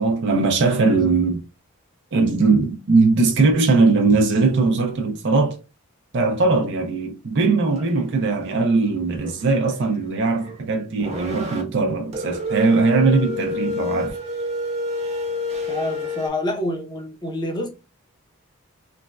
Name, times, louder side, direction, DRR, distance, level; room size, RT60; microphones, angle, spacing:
voice 1, 0.0-1.4 2.1-5.6 6.1-14.2, right 3 dB, 50° right, 0.4 m, -20 dB
sound 1, 7.7-8.0 8.5-8.7 9.1-10.6 11.0-11.6 12.1-16.3, left 2 dB, 30° right, 0.9 m, -29 dB
voice 2, 15.7-17.7, left 1 dB, 20° left, 0.6 m, -27 dB
3.2 x 2.2 x 2.3 m
head